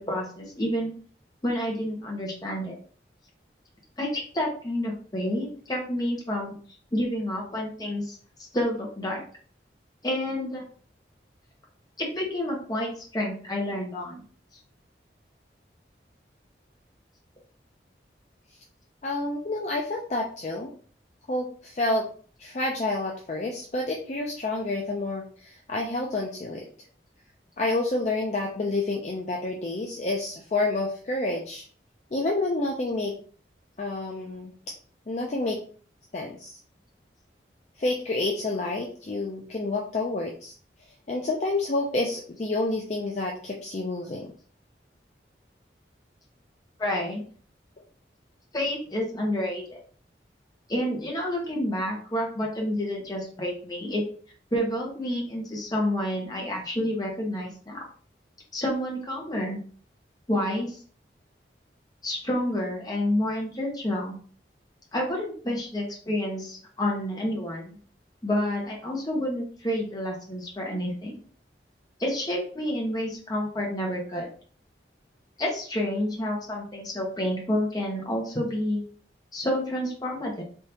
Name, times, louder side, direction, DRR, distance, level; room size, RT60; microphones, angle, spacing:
voice 1, 0.1-0.9 1.4-2.7 4.0-6.5 6.9-8.1 8.5-9.2 10.0-10.6 12.0-14.2 46.8-47.2 48.5-49.8 50.7-54.0 54.5-57.8 58.5-59.6 60.3-60.8 62.0-64.2 64.9-67.8 68.2-71.2 72.0-74.3 75.4-78.8 79.3-80.4, left 1 dB, 20° left, -1 dB, 0.9 m, -29 dB
voice 2, 19.0-20.7 21.3-22.1 22.4-26.6 27.6-31.6 32.1-33.1 33.8-34.5 35.1-35.6 36.1-36.6 37.8-40.5 41.1-44.3, left 2 dB, 40° left, 0 dB, 0.4 m, -29 dB
3.4 x 2.7 x 2.8 m, 0.43 s
head